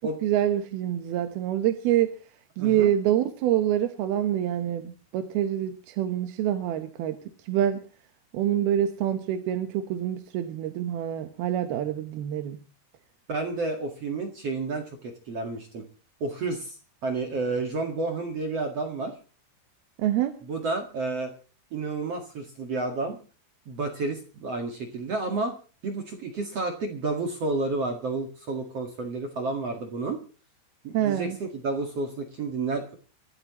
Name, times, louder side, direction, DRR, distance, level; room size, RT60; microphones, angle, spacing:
voice 1, 0.2-2.1 2.6-7.2 7.4-7.8 8.3-12.6 20.0-20.3 30.9-31.4, right 11 dB, 70° right, 8 dB, 2.7 m, -26 dB
voice 2, 2.6-2.9 13.3-15.8 16.2-16.8 17.0-19.1 20.4-21.3 21.7-23.2 23.7-25.5 25.8-30.2 30.8-33.0, right 3 dB, 50° right, 4 dB, 2.0 m, -30 dB
27.0 x 13.0 x 3.0 m, 0.37 s
omnidirectional pair, 5.3 m